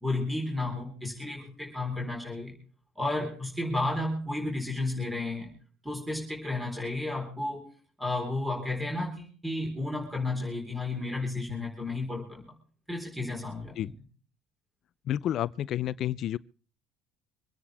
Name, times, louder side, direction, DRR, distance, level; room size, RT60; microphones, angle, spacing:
voice 1, 0.0-2.5 3.0-5.5 5.8-7.7 8.0-12.6 12.9-13.8, left 2 dB, 5° right, 4.1 m, -32 dB
voice 2, 15.1-16.4, left 11 dB, 55° left, 0.6 m, -30 dB
26.0 x 9.8 x 3.5 m
supercardioid pair, 95°, 0 cm